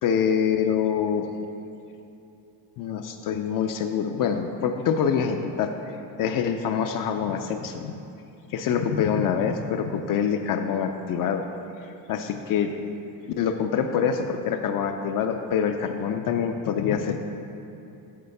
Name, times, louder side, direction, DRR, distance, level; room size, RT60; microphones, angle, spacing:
voice 1, 0.0-1.3 2.8-5.7 6.2-7.9 8.5-11.4 12.1-12.7 13.4-17.2, left 7 dB, 55° left, 5 dB, 0.4 m, -25 dB
6.6 x 4.7 x 6.5 m, 2.8 s
cardioid pair, 145°, 41 cm